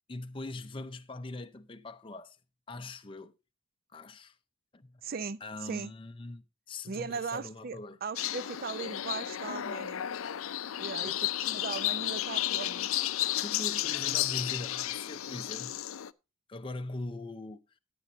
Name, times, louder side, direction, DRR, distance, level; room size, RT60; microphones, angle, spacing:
voice 1, 0.1-2.4 2.7-3.3 3.9-4.4 4.7-5.0 5.4-8.0 11.0-11.3 13.4-15.8 16.5-17.6, left 2 dB, 25° left, 0.5 m, -41 dB
voice 2, 5.0-5.9 6.9-10.0 10.8-12.9, right 5 dB, 45° right, 0.5 m, -38 dB
sound 1, 8.2-16.1, left 13 dB, 75° left, 0.5 m, -33 dB
11.5 x 8.6 x 3.9 m
head